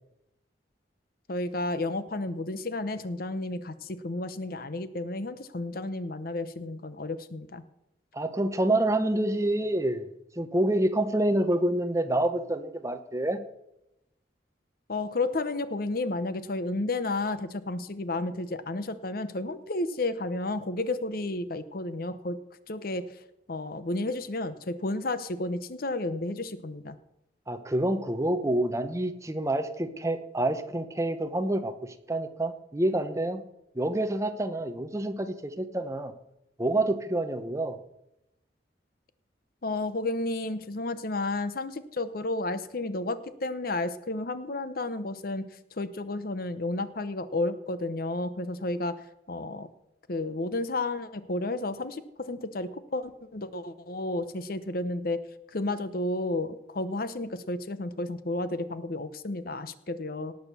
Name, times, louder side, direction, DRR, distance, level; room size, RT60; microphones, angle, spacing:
voice 1, 1.3-7.6 14.9-22.4 22.7-23.0 23.5-27.0 39.6-45.4 45.7-48.9 49.3-49.7 50.1-55.2 55.5-60.3, left 2 dB, 55° left, 13 dB, 0.8 m, -32 dB
voice 2, 8.1-13.4 27.5-33.4 33.7-36.1 36.6-37.8, right 1 dB, 15° right, 9 dB, 0.9 m, -27 dB
18.0 x 6.6 x 6.8 m, 0.86 s
head